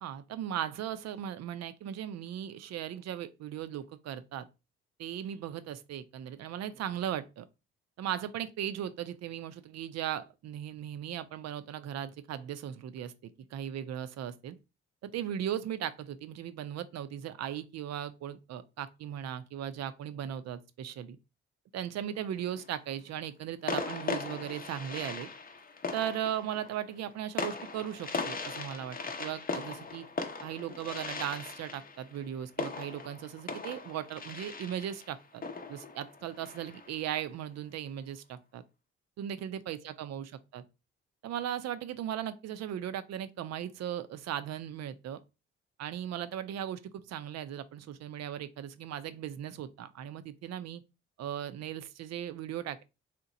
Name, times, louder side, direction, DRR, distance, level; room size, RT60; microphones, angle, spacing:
voice 1, 0.0-4.5 5.0-7.4 8.0-14.6 15.0-21.2 21.7-25.3 25.9-30.1 30.4-35.4 35.7-38.6 39.2-40.6 41.2-45.2 45.8-50.8 51.2-52.8, right 10 dB, 60° right, 0.5 m, -37 dB
sound 1, 22.2-22.8 23.7-37.1, left 4 dB, 30° left, 0.7 m, -39 dB
2.8 x 2.1 x 3.7 m
hypercardioid pair, 45°, 30 cm